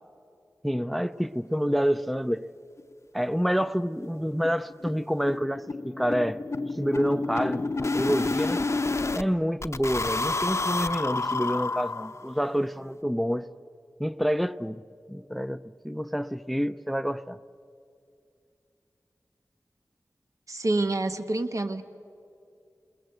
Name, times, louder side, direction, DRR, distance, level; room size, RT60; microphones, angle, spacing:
voice 1, 0.6-2.4 3.1-6.4 6.7-8.6 9.2-13.5 14.0-14.8 15.1-17.4, equal, ahead, 0.5 m, -28 dB
sound 1, 2.4-2.5 2.8-2.9 3.2-3.3 3.6-3.8 4.0-9.2 9.6-12.4, left 3 dB, 45° left, 0.7 m, -30 dB
voice 2, 20.5-21.8, right 2 dB, 55° right, 1.1 m, -27 dB
29.5 x 21.0 x 7.9 m
wide cardioid pair, 60°, 6 cm